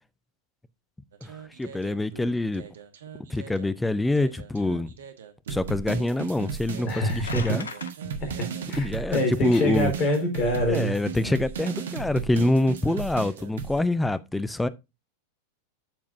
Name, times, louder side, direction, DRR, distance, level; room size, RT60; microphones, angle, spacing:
sound 1, 1.1-3.7 4.2-13.8, right 6 dB, 60° right, 1.2 m, -36 dB
voice 1, 1.2-2.6 3.3-4.9 5.5-7.7 8.8-9.9 10.7-14.7, left 2 dB, 5° left, 0.6 m, -26 dB
voice 2, 6.8-7.6 8.4-10.9, left 1 dB, 35° left, 4.2 m, -26 dB
sound 2, 6.9-7.9, left 5 dB, 70° left, 0.8 m, -38 dB
9.0 x 7.2 x 2.6 m
figure-of-eight pair, 90°, 0 cm